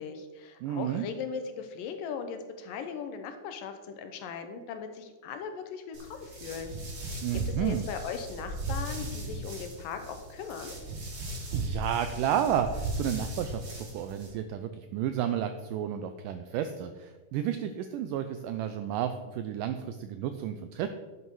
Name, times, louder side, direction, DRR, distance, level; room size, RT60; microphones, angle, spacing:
voice 1, 0.0-6.7 7.0-10.8, left 6 dB, 75° left, 7 dB, 2.3 m, -39 dB
voice 2, 0.6-1.1 7.2-7.9 11.5-13.6 13.9-20.9, right 10 dB, 90° right, 9 dB, 1.9 m, -31 dB
sound 1, 5.9-14.3, right 2 dB, 45° right, 3.8 m, -37 dB
11.0 x 8.3 x 4.7 m, 1.3 s
omnidirectional pair, 4.4 m